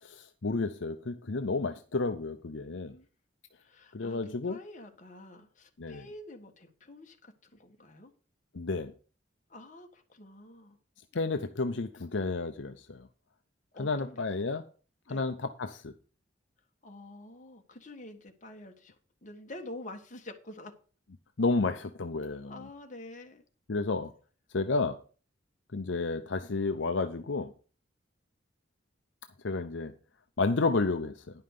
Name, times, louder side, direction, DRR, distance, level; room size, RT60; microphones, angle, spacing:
voice 1, 0.0-2.9 3.9-4.6 5.8-6.1 8.5-8.9 11.1-13.1 13.8-14.6 15.1-15.9 21.4-22.7 23.7-24.1 24.5-25.0 25.7-27.5 29.4-29.9 30.4-31.1, left 3 dB, 75° left, 8 dB, 0.7 m, -31 dB
voice 2, 3.7-8.1 9.5-10.8 11.8-11.9 13.7-14.5 15.1-15.2 16.8-18.9 19.2-20.7 22.5-23.4, left 1 dB, 40° left, 4 dB, 1.6 m, -47 dB
10.5 x 5.7 x 6.7 m, 0.38 s
head